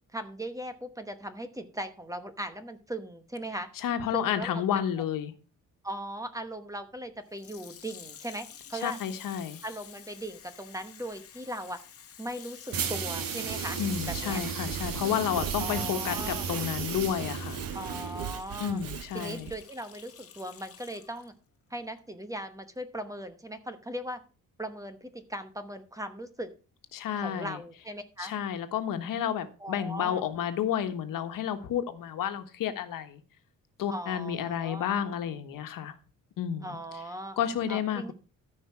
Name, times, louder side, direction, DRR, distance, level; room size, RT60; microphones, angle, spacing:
voice 1, 0.1-3.7 4.1-4.6 5.8-9.0 9.6-11.8 12.2-13.8 14.1-14.4 15.6-16.5 17.7-18.8 19.1-21.3 21.7-24.2 24.6-26.5 27.1-28.3 29.6-30.2 33.9-34.9 36.6-37.4 37.7-38.1, right 1 dB, 10° right, 9 dB, 1.0 m, -38 dB
voice 2, 3.8-5.3 8.8-9.6 13.8-17.6 18.6-19.5 26.9-27.6 28.2-33.2 33.8-36.0 36.4-36.8 37.4-38.1, left 9 dB, 75° left, 8 dB, 1.4 m, -31 dB
Water tap faucet / Sink (filling or washing), 7.3-21.3 22.0-22.1, left 8 dB, 45° left, 1.3 m, -49 dB
sound 1, 12.7-18.3, right 7 dB, 80° right, 1.6 m, -35 dB
Sawing / Wood, 13.3-19.6, right 9 dB, 45° right, 0.8 m, -40 dB
13.5 x 5.6 x 4.6 m, 0.35 s
cardioid pair, 155°, 33 cm